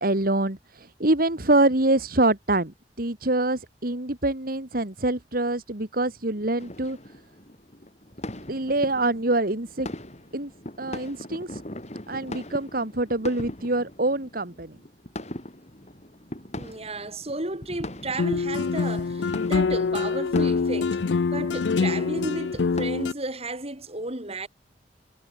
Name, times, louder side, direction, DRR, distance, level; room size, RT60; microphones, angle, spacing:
voice 1, 0.0-7.0 8.5-9.9 10.3-10.5 10.8-11.6 12.1-14.8, right 2 dB, 55° right, 2.4 m, -25 dB
sound 1, 6.6-22.9, left 1 dB, 40° left, 6.6 m, -40 dB
voice 2, 16.6-24.5, right 2 dB, 35° right, 6.6 m, -33 dB
sound 2, 18.2-23.1, left 4 dB, 80° left, 0.5 m, -25 dB
head